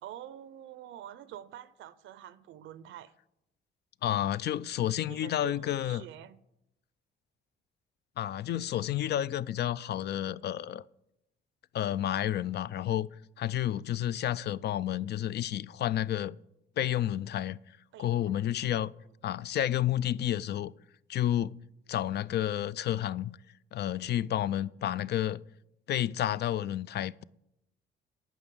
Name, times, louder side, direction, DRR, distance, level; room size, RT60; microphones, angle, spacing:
voice 1, 0.0-3.1 4.8-6.4 17.9-18.1, right 11 dB, 80° right, 0.6 m, -47 dB
voice 2, 4.0-6.0 8.2-10.8 11.7-13.1 13.4-16.4 16.8-17.6 18.0-18.9 19.2-20.7 21.1-21.5 21.9-23.4 23.7-25.4 25.9-27.2, left 12 dB, 55° left, 0.4 m, -30 dB
9.1 x 6.1 x 8.1 m
cardioid pair, 90°, 20 cm